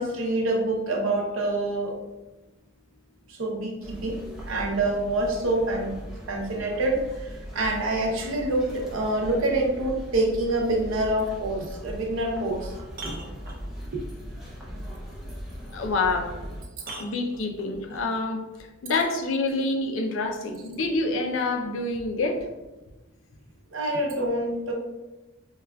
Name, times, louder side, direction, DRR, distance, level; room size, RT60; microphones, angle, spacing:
voice 1, 0.0-2.0 3.3-4.2 4.5-6.0 6.3-12.7 13.9-14.1 23.7-24.7, right 2 dB, 85° right, 1 dB, 0.7 m, -26 dB
sound 1, 3.8-16.6, equal, 5° right, 0.6 m, -39 dB
sound 2, 11.9-12.0 12.5-14.0 16.0-16.1 16.8-18.1 19.5-19.6, right 2 dB, 50° right, 0.6 m, -42 dB
voice 2, 15.7-16.3 17.0-18.4 18.8-22.5, left 3 dB, 75° left, 4 dB, 0.5 m, -27 dB
4.6 x 2.3 x 2.2 m, 1.1 s
head